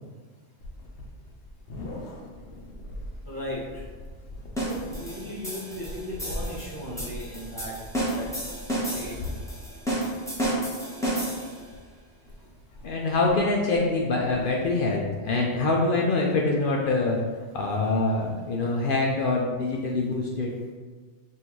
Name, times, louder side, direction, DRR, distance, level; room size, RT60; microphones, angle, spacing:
sound 1, 0.6-15.3, left 1 dB, 75° left, 1.0 m, -42 dB
voice 1, 3.2-3.9 4.3-7.8 8.1-8.4 8.7-9.2 11.6-12.9, equal, 25° right, -7 dB, 0.6 m, -38 dB
sound 2, 4.6-11.7, right 1 dB, 5° left, 0.9 m, -31 dB
voice 2, 12.8-17.2 17.5-20.5, left 3 dB, 60° left, -1 dB, 0.6 m, -25 dB
5.4 x 2.6 x 3.1 m, 1.4 s
omnidirectional pair, 1.2 m